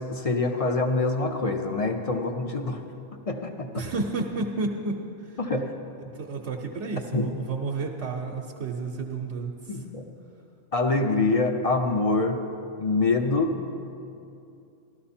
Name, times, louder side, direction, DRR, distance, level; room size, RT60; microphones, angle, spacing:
voice 1, 0.0-2.8 3.3-3.9 5.4-5.7 7.1-7.3 9.7-10.0 10.7-12.4 12.8-13.6, left 3 dB, 40° left, 4 dB, 0.5 m, -25 dB
voice 2, 3.7-5.4 6.1-9.8, right 3 dB, 70° right, 0 dB, 1.1 m, -31 dB
14.0 x 12.0 x 4.3 m, 2.6 s
omnidirectional pair, 1.3 m